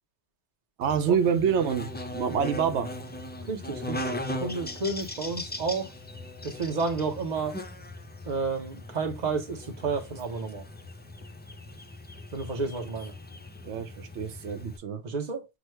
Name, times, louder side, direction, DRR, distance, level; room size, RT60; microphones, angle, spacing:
Buzz, 0.8-14.8, left 1 dB, 15° left, 0.3 m, -39 dB
voice 1, 0.8-2.9 13.7-15.0, right 7 dB, 90° right, 0.9 m, -27 dB
voice 2, 3.5-5.9 6.4-7.6 8.3-10.6 12.3-13.1 15.0-15.5, right 4 dB, 40° right, 1.0 m, -31 dB
6.1 x 2.4 x 3.2 m
omnidirectional pair, 1.1 m